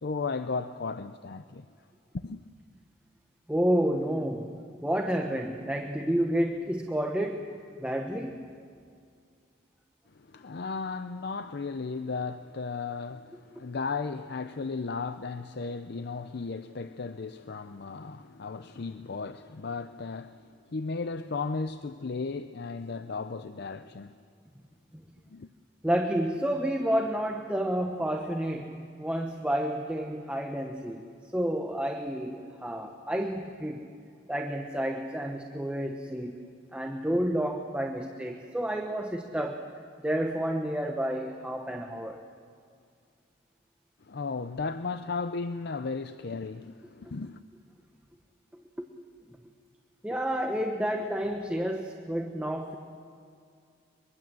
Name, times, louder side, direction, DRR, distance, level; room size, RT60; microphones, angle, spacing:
voice 1, 0.0-1.7 2.1-2.4 10.1-24.2 25.3-25.5 44.0-47.4, left 4 dB, 60° left, 0.6 m, -35 dB
voice 2, 3.5-4.6 4.8-8.4 25.8-31.1 31.3-33.9 34.3-36.4 36.7-39.6 40.0-42.2 48.5-48.9 50.0-52.8, right 1 dB, 5° right, 1.0 m, -30 dB
23.5 x 23.0 x 7.6 m
head